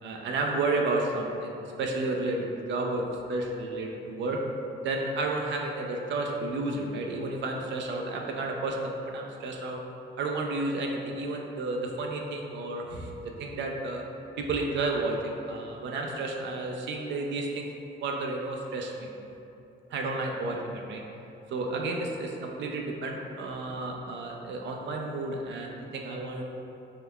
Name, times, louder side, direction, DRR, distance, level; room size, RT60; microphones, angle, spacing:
voice 1, 0.0-4.4 4.8-9.8 10.2-13.1 13.4-14.0 14.4-17.7 18.0-19.1 19.9-21.0 21.5-26.4, right 2 dB, 65° right, 1 dB, 0.4 m, -31 dB
3.6 x 3.1 x 2.2 m, 2.8 s
cardioid pair, 90°, 20 cm